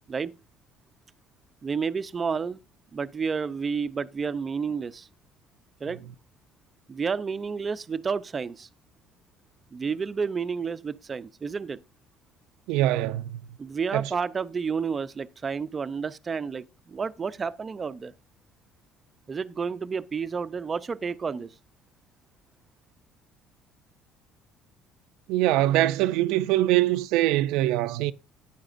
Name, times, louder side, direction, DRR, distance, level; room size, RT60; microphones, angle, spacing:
voice 1, 1.6-2.6 2.9-5.1 5.8-6.0 6.9-8.7 9.7-11.8 13.6-18.1 19.3-21.5, right 5 dB, 25° right, 0.5 m, -30 dB
voice 2, 12.7-13.4 13.9-14.1 25.3-28.1, right 15 dB, 85° right, 0.4 m, -23 dB
13.5 x 9.9 x 2.5 m
cardioid pair, 135°, 0 cm